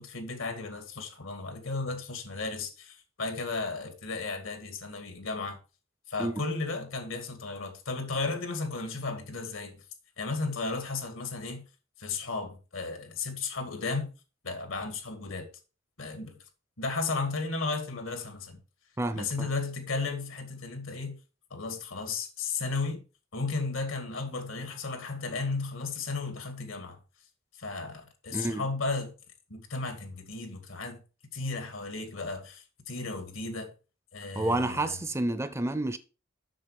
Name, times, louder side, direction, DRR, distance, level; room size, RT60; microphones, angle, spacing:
voice 1, 0.0-5.6 6.1-9.8 10.2-11.6 12.0-14.1 14.4-15.5 16.0-16.4 16.8-18.6 19.1-21.2 21.5-23.0 23.3-27.0 27.6-29.1 29.5-31.0 31.3-33.7 34.1-34.9, left 3 dB, 80° left, 2.0 m, -34 dB
voice 2, 19.0-19.5 28.3-28.7 34.3-36.0, right 1 dB, 15° right, 0.6 m, -29 dB
7.6 x 6.5 x 4.8 m
head